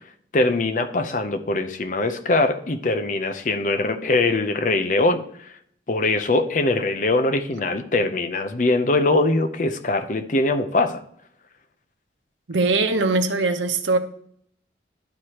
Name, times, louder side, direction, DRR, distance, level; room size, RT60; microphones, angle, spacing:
voice 1, 0.3-5.2 5.9-11.0, left 2 dB, 45° left, 0.6 m, -22 dB
voice 2, 12.5-14.0, right 3 dB, 90° right, 0.8 m, -21 dB
11.5 x 4.7 x 2.9 m
head